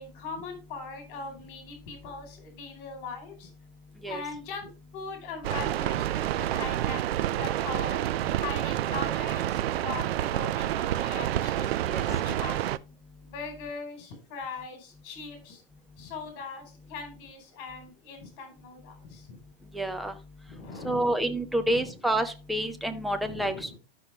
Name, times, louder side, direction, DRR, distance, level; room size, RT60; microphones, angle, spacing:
voice 1, 0.0-3.5 4.1-8.1 8.3-12.7 13.2-15.6 16.0-19.4 20.5-21.1 21.6-22.0 23.2-23.8, left 4 dB, 40° left, 4 dB, 4.6 m, -40 dB
sound 1, 5.4-12.8, right 12 dB, 75° right, 0.6 m, -28 dB
voice 2, 19.7-20.1 20.8-23.8, right 1 dB, ahead, 7 dB, 0.5 m, -28 dB
12.0 x 6.1 x 3.5 m, 0.30 s
supercardioid pair, 160°, 31 cm